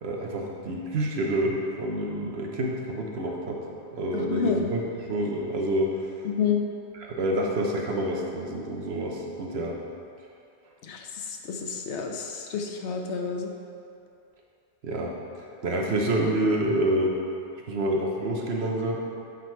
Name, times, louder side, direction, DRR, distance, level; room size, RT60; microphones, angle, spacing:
voice 1, 0.0-3.6 3.9-4.8 5.1-6.0 6.9-9.8 14.8-17.2 17.7-19.0, right 1 dB, 65° right, -1 dB, 1.0 m, -28 dB
voice 2, 4.1-4.7 6.2-6.6 10.8-13.5, left 6 dB, 75° left, 3 dB, 1.0 m, -29 dB
8.3 x 4.0 x 4.4 m, 2.6 s
omnidirectional pair, 1.2 m